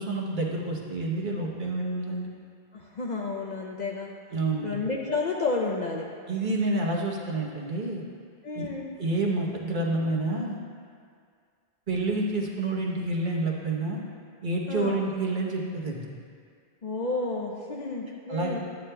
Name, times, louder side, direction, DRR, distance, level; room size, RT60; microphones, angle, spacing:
voice 1, 0.0-2.3 4.3-4.7 6.3-8.0 8.5-8.7 9.0-10.6 11.9-14.0 14.4-16.1 18.3-18.6, right 2 dB, 45° right, -2 dB, 1.0 m, -28 dB
voice 2, 2.7-4.1 4.6-6.1 8.4-8.9 14.7-15.0 16.8-18.6, left 3 dB, 50° left, -2 dB, 0.6 m, -31 dB
11.5 x 9.0 x 2.2 m, 2.2 s
omnidirectional pair, 1.2 m